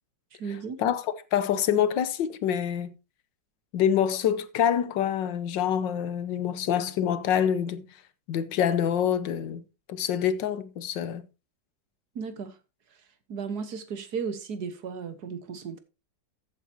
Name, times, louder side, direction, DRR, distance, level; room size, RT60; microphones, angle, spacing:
voice 1, 0.3-0.8 12.2-12.6 13.3-15.8, right 6 dB, 60° right, 1.7 m, -35 dB
voice 2, 1.3-2.9 3.7-7.8 8.3-9.6 9.9-11.2, left 9 dB, 85° left, 1.6 m, -26 dB
14.5 x 8.1 x 2.9 m
omnidirectional pair, 1.9 m